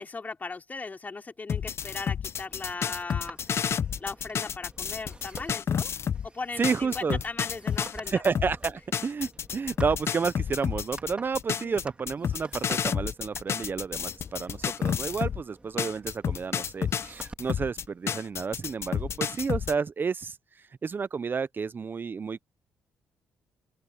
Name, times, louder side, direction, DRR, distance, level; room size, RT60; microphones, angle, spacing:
voice 1, 0.0-3.4 4.0-5.9 6.2-8.2 11.6-11.8 15.7-15.8, left 4 dB, 30° left, 3.4 m, -38 dB
sound 1, 1.5-6.3 6.6-15.4 15.8-19.7, left 8 dB, 55° left, 0.8 m, -30 dB
sound 2, 2.3-19.3, right 2 dB, 20° right, 3.6 m, -50 dB
voice 2, 6.6-7.2 8.1-20.4 20.8-22.4, right 5 dB, 40° right, 0.7 m, -31 dB
open air
supercardioid pair, 60°, 5 cm